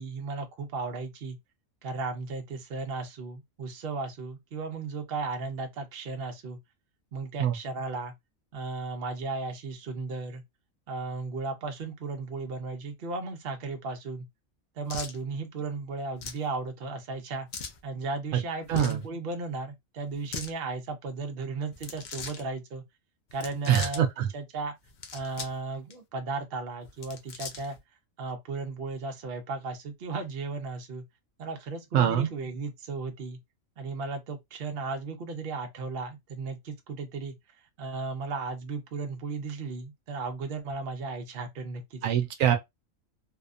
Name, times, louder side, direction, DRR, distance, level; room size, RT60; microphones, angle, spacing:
voice 1, 0.0-1.4 1.8-6.6 7.1-8.1 8.5-10.4 10.9-14.3 14.8-17.5 17.8-22.8 23.3-24.1 24.3-24.7 25.1-27.8 28.2-31.0 31.4-33.4 33.8-37.4 37.8-42.2, right 3 dB, 55° right, 0.8 m, -35 dB
sound 1, 14.9-15.2 16.2-16.4 17.5-17.8 18.6-19.0 20.1-20.5 21.7-22.4 23.3-24.0 24.8-25.6 25.9-26.0 26.8-27.8, left 5 dB, 80° left, 0.4 m, -39 dB
voice 2, 18.7-19.0 23.7-24.3 31.9-32.3 42.0-42.6, right 10 dB, 80° right, 0.9 m, -24 dB
2.7 x 2.1 x 2.4 m
omnidirectional pair, 1.4 m